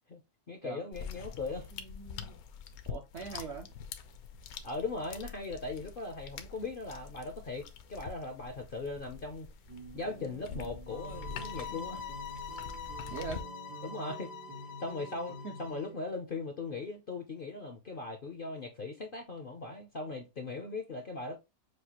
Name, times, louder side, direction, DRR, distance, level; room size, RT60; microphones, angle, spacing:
voice 1, 0.5-1.7 4.6-9.5 9.9-12.1 13.8-14.3 14.8-21.4, left 3 dB, 50° left, 0.6 m, -39 dB
sound 1, 0.9-13.4, left 7 dB, 70° left, 1.1 m, -46 dB
voice 2, 1.7-2.4 2.9-3.7 13.1-13.4 15.4-15.5, right 4 dB, 60° right, 0.7 m, -41 dB
sound 2, 9.7-16.1, right 3 dB, 90° right, 2.4 m, -48 dB
sound 3, 10.9-15.9, left 6 dB, 90° left, 1.2 m, -44 dB
6.6 x 2.4 x 2.9 m
omnidirectional pair, 1.7 m